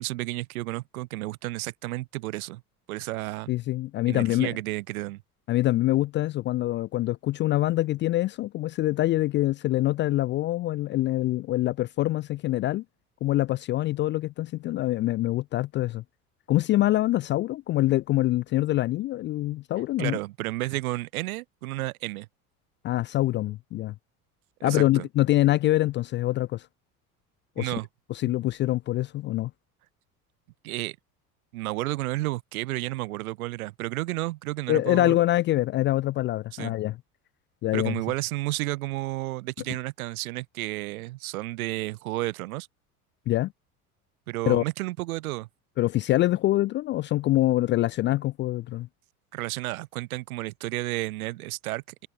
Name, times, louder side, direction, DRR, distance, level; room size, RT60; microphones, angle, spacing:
voice 1, 0.0-2.6 2.9-3.5 4.1-5.2 20.0-22.3 24.6-25.0 27.6-27.9 30.6-31.0 31.5-35.2 36.5-36.7 37.7-42.7 44.3-45.5 49.3-52.1, right 19 dB, 65° right, 1.6 m, -32 dB
voice 2, 3.5-4.6 5.5-12.8 13.2-16.0 16.5-20.2 22.8-23.9 24.6-26.7 27.6-27.8 28.1-29.5 34.7-37.0 37.6-37.9 43.3-43.5 44.5-44.6 45.8-48.9, left 16 dB, 25° left, 0.4 m, -25 dB
figure-of-eight pair, 70°, 45 cm